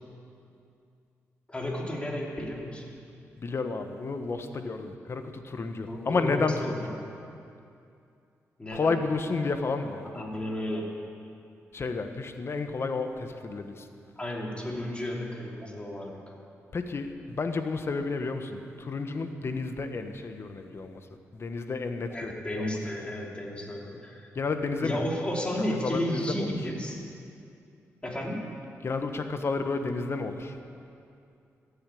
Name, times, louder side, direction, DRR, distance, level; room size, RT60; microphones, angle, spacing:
voice 1, 1.5-2.9 5.8-7.1 8.6-8.9 10.1-10.9 14.2-16.2 22.1-24.3 24.8-27.0 28.0-28.4, left 1 dB, 20° left, -1 dB, 3.2 m, -33 dB
voice 2, 3.4-7.0 8.7-10.4 11.7-13.9 16.7-21.1 21.3-22.7 24.3-25.0 25.8-26.5 28.8-30.6, left 4 dB, 50° left, 7 dB, 1.3 m, -31 dB
14.0 x 9.7 x 8.5 m, 2.5 s
cardioid pair, 65°, 6 cm